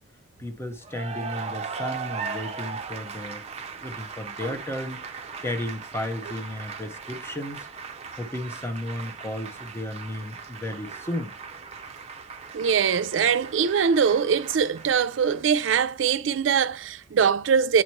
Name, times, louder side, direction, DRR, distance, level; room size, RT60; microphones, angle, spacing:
voice 1, 0.4-3.5 3.8-7.7 8.2-11.3, left 1 dB, 15° left, 0.8 m, -34 dB
Cheering / Applause, 0.8-15.7, right 5 dB, 35° right, 0.5 m, -38 dB
voice 2, 12.5-17.8, right 6 dB, 80° right, 0.4 m, -22 dB
8.4 x 2.9 x 4.4 m
head